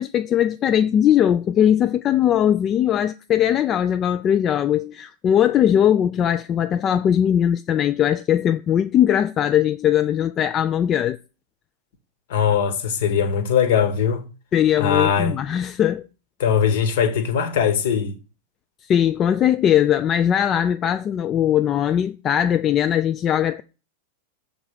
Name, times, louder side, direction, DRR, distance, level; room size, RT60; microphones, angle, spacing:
voice 1, 0.0-11.2 14.5-16.0 18.9-23.6, left 10 dB, 30° left, 0.3 m, -20 dB
voice 2, 12.3-14.2 14.8-15.4 16.4-18.1, left 7 dB, 55° left, 1.1 m, -20 dB
6.9 x 3.8 x 6.3 m
figure-of-eight pair, 90°, 0 cm